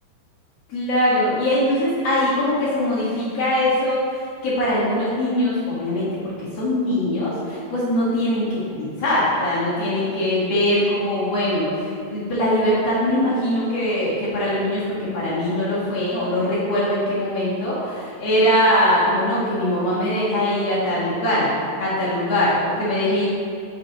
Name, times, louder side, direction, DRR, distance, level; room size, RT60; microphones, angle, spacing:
voice 1, 0.7-21.5 21.8-23.3, left 1 dB, 60° left, -10 dB, 1.7 m, -22 dB
6.5 x 5.2 x 4.0 m, 2.3 s
omnidirectional pair, 5.0 m